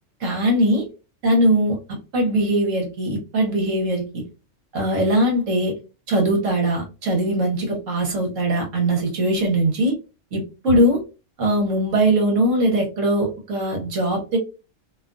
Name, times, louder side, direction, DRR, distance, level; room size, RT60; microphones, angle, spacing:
voice 1, 0.2-0.9 1.2-1.8 2.1-4.2 4.7-5.7 6.1-10.0 10.3-11.0 11.4-14.4, right 1 dB, 70° right, 0 dB, 1.3 m, -21 dB
2.7 x 2.4 x 2.4 m, 0.30 s
omnidirectional pair, 1.4 m